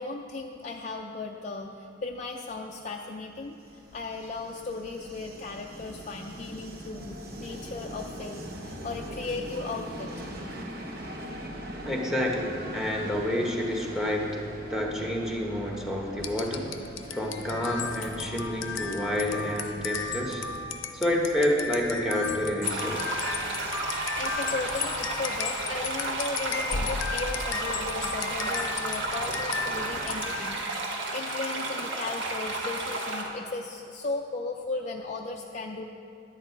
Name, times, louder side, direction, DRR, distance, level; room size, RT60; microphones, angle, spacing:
voice 1, 0.0-10.1 23.9-35.8, left 3 dB, 35° left, 1 dB, 0.4 m, -36 dB
Train, 3.3-21.1, equal, 50° right, 0.9 m, -42 dB
voice 2, 11.8-16.8 17.1-20.5 20.9-23.1, left 1 dB, 5° right, 0 dB, 1.0 m, -29 dB
sound 1, 16.2-30.6, left 5 dB, 75° left, 0.7 m, -34 dB
sound 2, 22.6-33.2, right 2 dB, 65° right, 1.3 m, -32 dB
11.0 x 8.8 x 4.5 m, 2.5 s
head